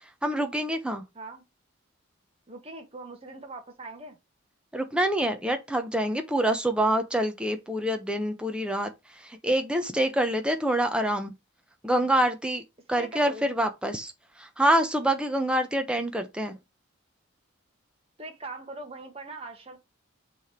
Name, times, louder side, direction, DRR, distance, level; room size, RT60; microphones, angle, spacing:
voice 1, 0.2-1.0 4.7-11.3 11.8-12.6 12.9-14.1 14.4-16.6, right 1 dB, 5° right, 0.8 m, -26 dB
voice 2, 2.5-4.2 13.0-13.4 18.2-19.8, right 2 dB, 25° right, 1.4 m, -41 dB
6.2 x 3.4 x 4.5 m
head